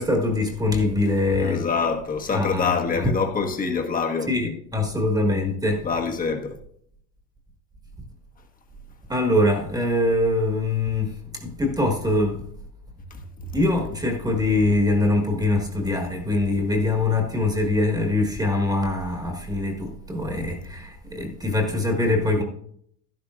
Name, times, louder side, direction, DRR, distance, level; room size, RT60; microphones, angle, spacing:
voice 1, 0.0-1.7 2.3-3.1 4.3-5.8 9.1-12.4 13.5-22.4, left 2 dB, 10° right, 1.6 m, -23 dB
voice 2, 1.4-4.3 5.8-6.6 13.1-13.5, left 5 dB, 20° left, 1.3 m, -26 dB
11.5 x 11.0 x 2.5 m
supercardioid pair, 130°, 44 cm